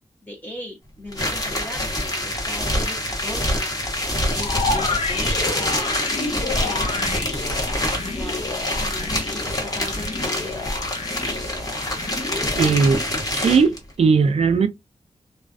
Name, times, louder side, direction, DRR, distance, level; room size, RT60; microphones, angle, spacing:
voice 1, 0.2-3.0 3.2-3.7 4.3-7.2 8.0-10.7, left 1 dB, 10° left, 0.7 m, -38 dB
sound 1, 1.1-13.8, left 1 dB, 30° left, 1.0 m, -26 dB
sound 2, 4.4-12.7, left 3 dB, 55° left, 0.6 m, -30 dB
voice 2, 12.5-13.0 13.3-14.7, right 5 dB, 55° right, 0.4 m, -18 dB
2.4 x 2.2 x 2.3 m
wide cardioid pair, 90°, 13 cm